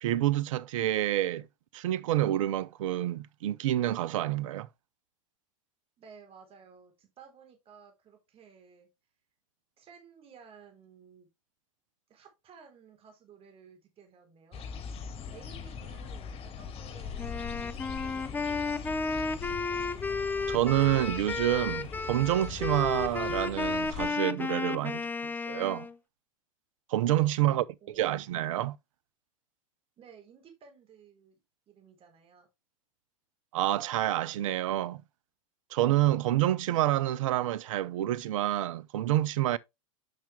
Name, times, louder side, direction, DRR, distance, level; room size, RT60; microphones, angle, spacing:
voice 1, 0.0-1.5 1.7-4.7 20.5-25.9 26.9-27.6 28.0-28.8 33.5-35.0 35.7-39.6, right 13 dB, 65° right, 0.7 m, -28 dB
voice 2, 6.0-8.9 9.8-11.3 12.1-14.7 14.9-18.8 27.4-28.2 30.0-31.4 31.7-32.5, right 6 dB, 35° right, 4.0 m, -55 dB
sound 1, 14.5-24.1, left 7 dB, 35° left, 1.7 m, -41 dB
Wind instrument woodwind instrument, 17.2-25.9, left 4 dB, 10° left, 0.8 m, -33 dB
7.6 x 5.9 x 3.3 m
hypercardioid pair, 100°, 18 cm